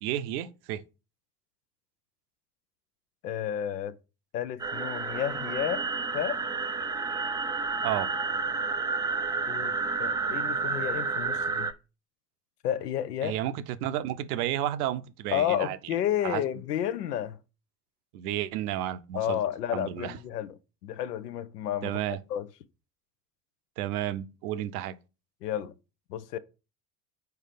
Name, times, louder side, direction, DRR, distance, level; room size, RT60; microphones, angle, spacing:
voice 1, 0.0-0.8 7.8-8.1 13.2-15.8 16.2-16.4 18.1-19.4 19.7-20.1 21.8-22.2 23.8-24.9, right 12 dB, 70° right, 0.7 m, -31 dB
voice 2, 3.2-3.9 4.3-5.8 6.1-6.4 9.5-11.7 12.6-13.4 15.3-17.4 19.1-20.5 20.8-22.5 25.4-25.7 26.1-26.4, left 10 dB, 85° left, 0.6 m, -31 dB
sound 1, 4.6-11.7, right 4 dB, 10° right, 0.3 m, -30 dB
4.6 x 4.5 x 5.0 m
hypercardioid pair, 65°, 47 cm